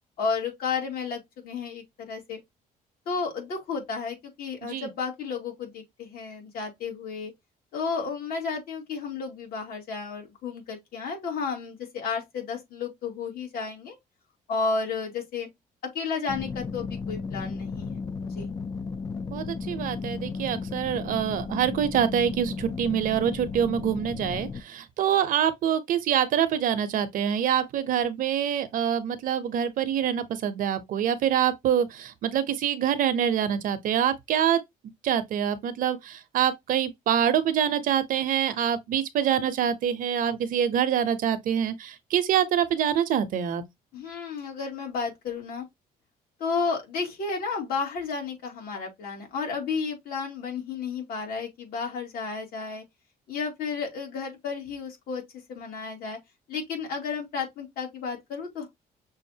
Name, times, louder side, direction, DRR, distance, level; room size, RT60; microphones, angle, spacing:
voice 1, 0.2-2.4 3.1-7.3 7.7-14.0 14.5-15.5 15.8-18.0 18.4-18.5 43.9-45.6 46.4-52.8 53.3-55.2 55.5-56.2 56.5-58.7, left 5 dB, 75° left, 2.3 m, -32 dB
sound 1, 16.3-24.6, left 4 dB, 25° left, 0.3 m, -34 dB
voice 2, 19.3-34.6 35.0-43.6, right 9 dB, 60° right, 0.8 m, -25 dB
6.3 x 2.5 x 2.7 m
cardioid pair, 160°, 16 cm